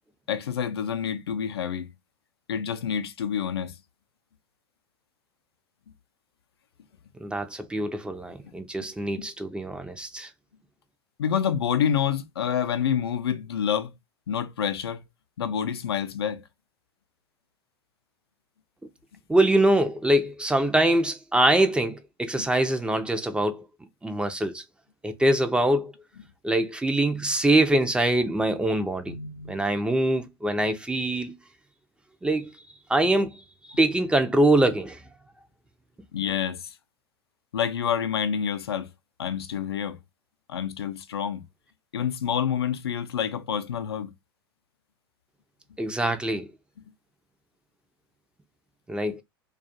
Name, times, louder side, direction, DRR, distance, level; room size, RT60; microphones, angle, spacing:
voice 1, 0.3-1.9 2.5-3.8 9.2-9.3 11.2-13.9 14.3-15.0 15.4-16.4 22.4-22.5 29.1-29.6 36.1-36.7 37.5-38.9 39.2-40.0 40.5-41.4 41.9-44.1, left 8 dB, 80° left, 0.4 m, -28 dB
voice 2, 7.2-10.3 19.3-23.6 24.0-24.6 25.0-25.9 26.4-29.2 29.5-31.4 32.2-32.5 32.9-33.4 33.8-35.0 45.8-46.5 48.9-49.2, right 1 dB, 5° right, 0.4 m, -23 dB
2.3 x 2.3 x 2.5 m
hypercardioid pair, 85°, 13 cm